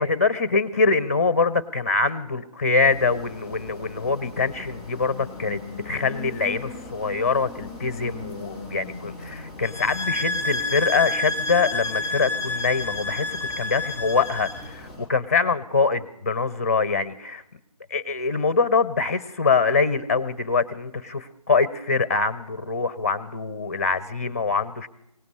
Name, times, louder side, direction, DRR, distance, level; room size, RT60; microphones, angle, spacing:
voice 1, 0.0-17.4 17.9-24.9, left 4 dB, 25° left, 16 dB, 0.7 m, -24 dB
sound 1, 2.8-15.0, left 3 dB, 5° right, 5.1 m, -40 dB
sound 2, 9.6-14.7, left 2 dB, 20° right, 1.7 m, -29 dB
21.5 x 18.5 x 3.2 m, 0.81 s
figure-of-eight pair, 160°, 20 cm